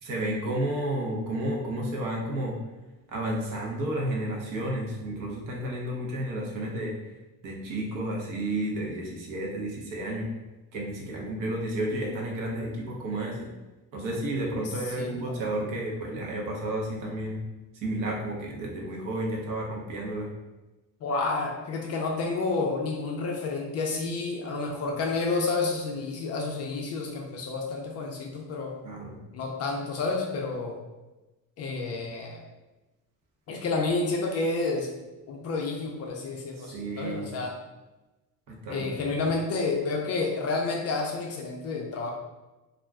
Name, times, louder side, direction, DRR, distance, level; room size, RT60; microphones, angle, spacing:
voice 1, 0.0-2.6 3.1-6.9 7.4-10.3 10.7-13.5 13.9-17.4 17.8-20.3 28.8-29.2 36.6-37.3 38.5-38.9, right 1 dB, 55° right, -1 dB, 0.8 m, -31 dB
voice 2, 15.0-15.4 21.0-28.7 29.3-30.8 31.6-32.4 33.5-34.9 35.3-37.5 38.7-42.1, left 3 dB, 40° left, 0 dB, 0.4 m, -30 dB
2.4 x 2.1 x 3.5 m, 1.1 s
cardioid pair, 145°, 39 cm